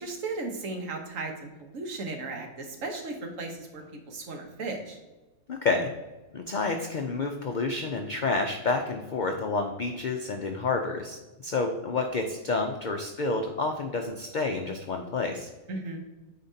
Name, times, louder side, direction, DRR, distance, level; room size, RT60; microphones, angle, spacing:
voice 1, 0.0-5.0 15.7-16.0, right 3 dB, 65° right, 3 dB, 1.4 m, -36 dB
voice 2, 5.5-5.9 6.3-15.5, left 3 dB, 80° left, 4 dB, 0.4 m, -29 dB
8.9 x 4.3 x 2.7 m, 1.1 s
omnidirectional pair, 1.5 m